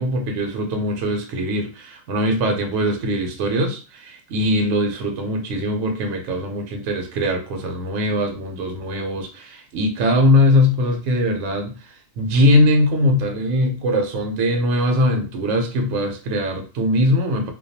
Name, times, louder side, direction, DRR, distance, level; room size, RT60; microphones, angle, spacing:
voice 1, 0.0-17.5, left 1 dB, 70° right, 3 dB, 0.9 m, -21 dB
2.2 x 2.2 x 2.6 m, 0.34 s
omnidirectional pair, 1.3 m